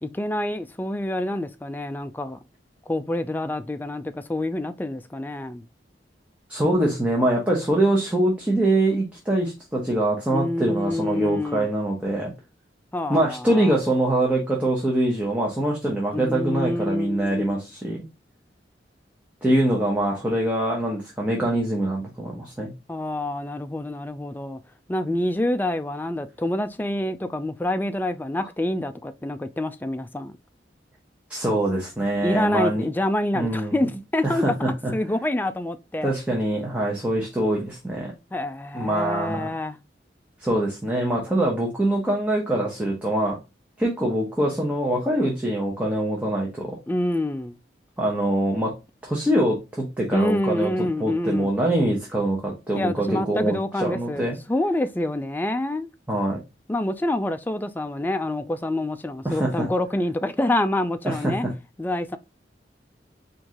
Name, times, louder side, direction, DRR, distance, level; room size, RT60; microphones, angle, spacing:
voice 1, 0.0-2.4 2.9-5.6 10.3-11.7 12.9-13.7 16.1-17.6 22.9-24.6 24.9-30.4 32.2-34.5 34.9-36.1 38.3-39.8 46.9-47.6 50.1-51.5 52.8-55.9 56.7-61.4 61.8-62.2, left 1 dB, 10° left, 0.3 m, -27 dB
voice 2, 6.5-12.3 13.1-18.0 19.4-22.7 31.3-32.8 33.3-33.7 34.2-34.9 36.0-38.1 38.7-39.5 40.4-43.4 43.8-46.8 48.0-48.7 49.0-50.7 51.0-54.4 56.1-56.4 59.2-59.7 61.0-61.3, right 1 dB, 10° right, 0.9 m, -24 dB
4.6 x 2.6 x 3.6 m
head